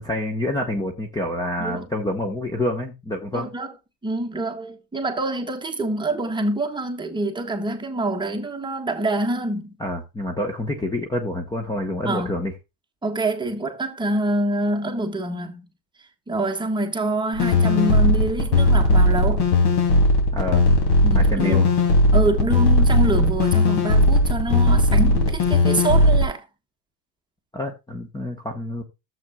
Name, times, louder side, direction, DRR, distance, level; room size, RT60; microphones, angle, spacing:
voice 1, 0.0-3.5 9.8-12.5 20.3-20.7 21.1-21.6 27.5-28.8, left 1 dB, 10° left, 1.1 m, -27 dB
voice 2, 3.3-3.7 4.0-9.7 12.0-12.4 13.0-15.7 16.3-19.5 21.0-21.7 22.1-26.4, right 2 dB, 10° right, 1.4 m, -26 dB
sound 1, 17.3-26.2, left 2 dB, 60° left, 2.9 m, -17 dB
13.5 x 7.6 x 2.3 m
supercardioid pair, 125°, 47 cm